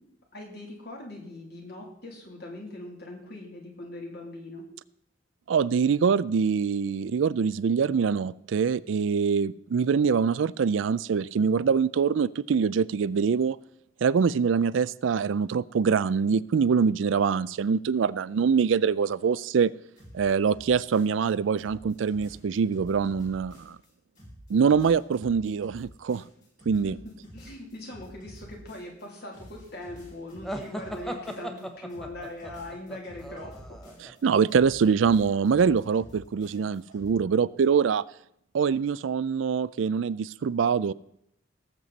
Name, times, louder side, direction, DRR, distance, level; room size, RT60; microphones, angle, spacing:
voice 1, 0.3-4.6 26.8-33.8, left 1 dB, 55° left, 3.0 m, -41 dB
voice 2, 5.5-13.6 14.0-19.7 20.1-23.8 24.5-26.2 26.7-27.0 34.2-38.0 38.5-40.9, right 6 dB, 85° right, 0.4 m, -24 dB
sound 1, 20.0-21.3 21.6-23.9 24.2-29.0 29.3-31.6 31.9-34.2 34.5-37.1, equal, 40° left, 5.3 m, -49 dB
sound 2, 30.4-34.1, equal, ahead, 0.9 m, -38 dB
18.5 x 7.6 x 4.1 m
head